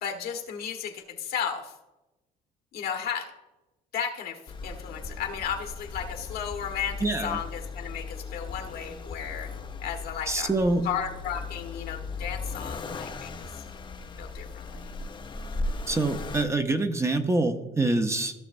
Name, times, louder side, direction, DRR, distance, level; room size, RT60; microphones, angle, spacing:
voice 1, 0.0-1.7 2.7-3.3 3.9-4.4 4.6-9.5 9.8-10.5 10.8-13.3 14.2-14.9, left 8 dB, 65° left, 3 dB, 1.3 m, -34 dB
Accelerating revving vroom, 4.5-16.4, left 3 dB, 30° left, 0.6 m, -37 dB
voice 2, 7.0-7.4 10.3-10.8 15.9-18.3, right 2 dB, 15° right, 6 dB, 0.6 m, -25 dB
15.0 x 6.4 x 2.6 m, 1.0 s
cardioid pair, 110°, 17 cm